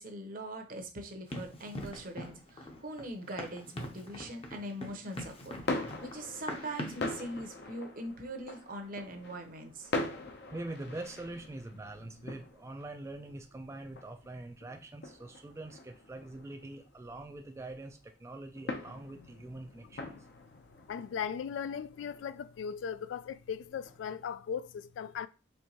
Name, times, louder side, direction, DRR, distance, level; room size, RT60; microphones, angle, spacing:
voice 1, 0.0-5.6 6.0-9.9, right 1 dB, 50° right, 0.8 m, -42 dB
Run, 1.3-7.1, left 1 dB, 30° left, 0.7 m, -43 dB
sound 1, 5.3-24.3, left 2 dB, 60° left, 0.7 m, -43 dB
voice 2, 5.7-6.1 10.5-20.1, right 2 dB, 15° right, 0.3 m, -44 dB
voice 3, 20.9-25.3, left 7 dB, 90° left, 0.3 m, -38 dB
4.5 x 3.2 x 2.9 m
head